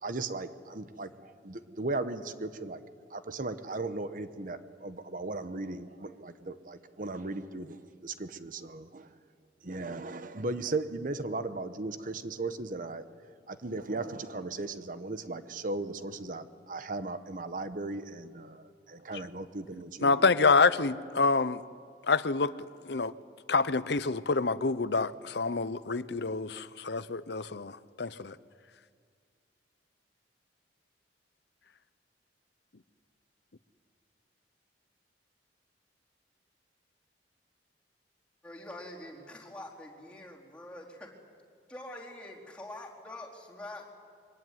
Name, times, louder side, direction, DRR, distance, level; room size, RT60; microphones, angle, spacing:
voice 1, 0.0-2.8 3.1-9.1 9.6-13.0 13.5-20.2, right 2 dB, 50° right, 11 dB, 1.1 m, -37 dB
voice 2, 20.0-21.6 22.1-22.5 22.9-23.1 23.5-28.3, left 4 dB, 65° left, 16 dB, 0.8 m, -27 dB
voice 3, 38.4-41.1 41.7-43.9, left 1 dB, 5° left, -4 dB, 4.2 m, -45 dB
24.0 x 23.5 x 9.5 m, 2.1 s
head